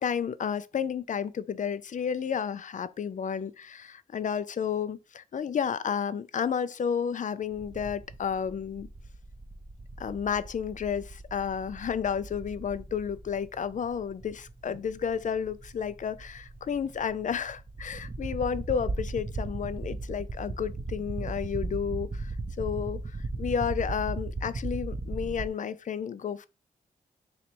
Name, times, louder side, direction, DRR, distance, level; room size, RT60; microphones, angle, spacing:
voice 1, 0.0-8.9 10.0-22.3 22.6-26.5, left 7 dB, 50° left, 0.4 m, -31 dB
sound 1, 7.5-25.5, right 2 dB, 30° right, 0.7 m, -37 dB
sound 2, 14.7-15.0 15.9-17.1 18.8-19.0, right 3 dB, 85° right, 1.5 m, -57 dB
3.2 x 2.8 x 4.3 m
cardioid pair, 55°, 16 cm